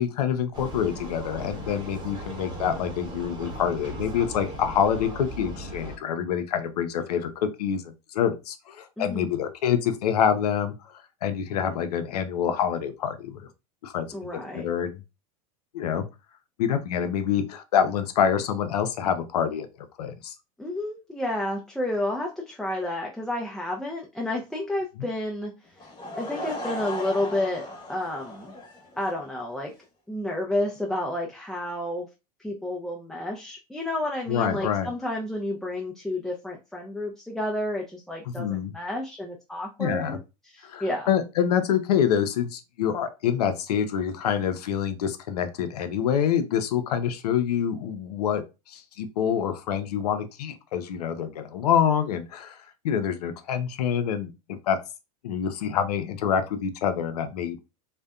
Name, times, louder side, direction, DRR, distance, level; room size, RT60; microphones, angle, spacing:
voice 1, 0.0-10.7 11.2-13.4 13.8-14.1 14.5-15.0 15.7-16.0 16.6-19.7 20.0-20.3 34.3-34.9 38.3-38.7 39.8-40.2 40.6-54.3 54.6-54.8 55.2-57.6, left 8 dB, 85° left, 0.5 m, -26 dB
Vehicle, 0.5-6.0, right 1 dB, 25° right, 0.9 m, -37 dB
voice 2, 9.0-9.3 14.1-14.6 20.6-25.5 26.2-28.6 29.0-29.7 30.1-32.1 32.4-40.2 40.5-41.1, left 1 dB, ahead, 0.4 m, -30 dB
Laughter / Crowd, 25.8-29.3, left 1 dB, 25° left, 1.0 m, -36 dB
2.5 x 2.1 x 2.3 m
hypercardioid pair, 105°, 20 cm